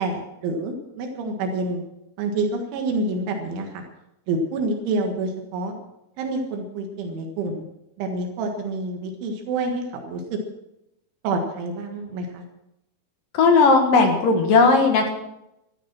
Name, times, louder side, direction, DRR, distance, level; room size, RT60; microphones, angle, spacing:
voice 1, 0.0-1.8 2.2-3.8 4.3-5.8 6.2-7.6 8.0-10.4 11.2-12.4, right 2 dB, 80° right, 3 dB, 4.1 m, -27 dB
voice 2, 13.3-15.1, left 4 dB, 60° left, 3 dB, 2.8 m, -16 dB
14.0 x 12.5 x 6.1 m, 0.86 s
omnidirectional pair, 5.4 m